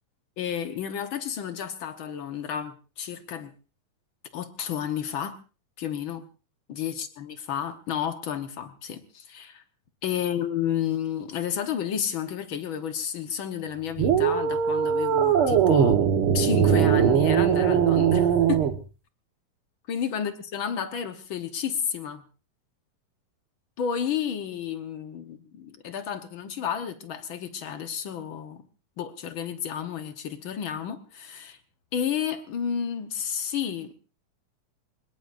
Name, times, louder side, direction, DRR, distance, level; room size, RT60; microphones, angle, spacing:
voice 1, 0.4-3.5 4.3-5.4 5.8-6.2 6.7-9.6 10.0-16.0 16.3-18.6 19.9-22.2 23.8-28.6 29.0-31.6 31.9-34.0, left 8 dB, 70° left, 7 dB, 1.2 m, -31 dB
sound 1, 14.0-18.8, right 8 dB, 55° right, 1.6 m, -21 dB
25.0 x 21.0 x 2.6 m, 0.35 s
omnidirectional pair, 4.1 m